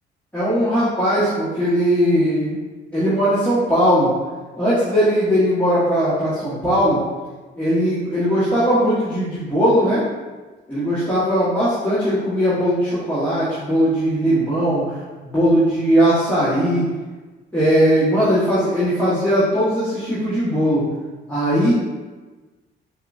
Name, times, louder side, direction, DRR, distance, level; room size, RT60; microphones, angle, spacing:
voice 1, 0.3-2.5 2.9-4.1 4.6-7.0 7.6-10.0 10.7-14.9 15.2-16.8 17.5-20.8 21.3-21.7, equal, 5° left, -14 dB, 1.5 m, -19 dB
5.4 x 2.4 x 2.6 m, 1.3 s
cardioid pair, 90°, 20 cm